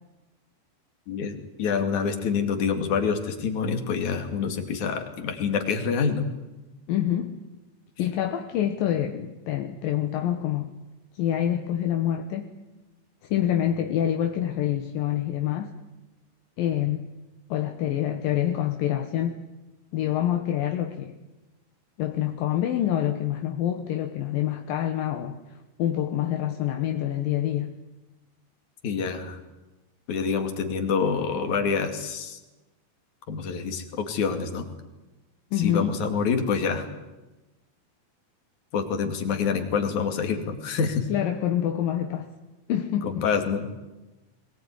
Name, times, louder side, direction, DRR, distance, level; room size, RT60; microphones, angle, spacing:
voice 1, 1.1-6.3 28.8-29.4 30.1-32.4 33.3-34.7 35.6-36.9 38.7-41.1 43.0-43.7, left 6 dB, 55° left, 3.6 m, -26 dB
voice 2, 6.9-7.4 8.0-10.7 11.2-12.5 13.2-15.7 16.6-17.1 17.5-19.4 19.9-21.2 22.0-25.4 25.8-27.7 35.5-35.9 41.1-42.3 42.7-43.2, left 11 dB, 75° left, 2.9 m, -26 dB
22.0 x 20.0 x 9.6 m
omnidirectional pair, 4.2 m